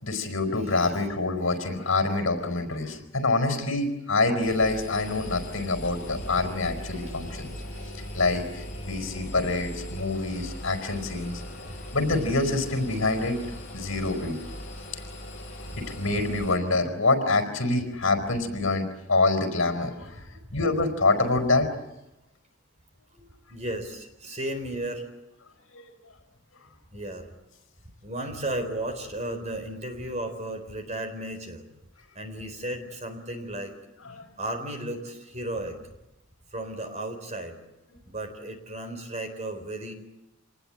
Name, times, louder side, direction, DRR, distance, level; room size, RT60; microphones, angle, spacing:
voice 1, 0.0-7.5 8.1-11.4 11.9-13.4 13.7-14.4 15.8-20.2 20.5-21.7 23.1-23.3 25.7-25.8 34.0-34.2, left 3 dB, 65° left, 7 dB, 4.8 m, -26 dB
voice 2, 0.6-1.0 23.5-25.0 26.9-27.3 28.0-31.6 32.1-33.7 34.4-35.8 36.5-37.6 38.1-39.9, right 1 dB, 35° right, 7 dB, 4.1 m, -34 dB
Engine, 4.4-16.6, left 1 dB, 35° left, 5.9 m, -39 dB
27.0 x 19.5 x 8.9 m, 0.93 s
head